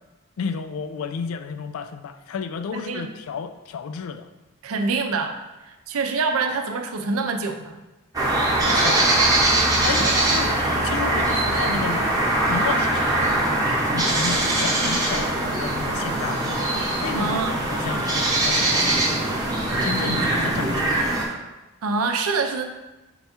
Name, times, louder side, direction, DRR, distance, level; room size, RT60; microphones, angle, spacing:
voice 1, 0.4-4.3 8.6-9.1 9.8-12.1 12.5-13.4 13.9-16.6 17.0-17.4 17.7-19.4 19.8-21.2, left 5 dB, 75° left, 10 dB, 0.3 m, -32 dB
voice 2, 2.7-3.1 4.6-7.8 10.0-10.1 17.1-17.5 21.8-22.6, right 4 dB, 80° right, 5 dB, 0.5 m, -26 dB
sound 1, 8.1-21.2, right 1 dB, 15° right, 0.8 m, -22 dB
5.4 x 2.3 x 4.3 m, 1.1 s
head